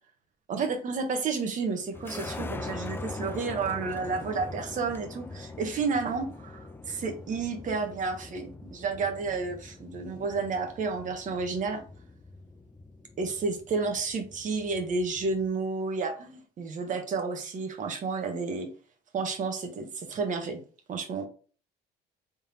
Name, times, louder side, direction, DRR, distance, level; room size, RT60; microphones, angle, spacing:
voice 1, 0.5-11.8 13.2-18.7 19.1-20.6 20.9-21.3, right 4 dB, 50° right, 6 dB, 1.1 m, -31 dB
sound 1, 1.9-15.5, left 2 dB, 15° left, 0.4 m, -43 dB
3.7 x 3.6 x 2.9 m, 0.39 s
cardioid pair, 110°, 17 cm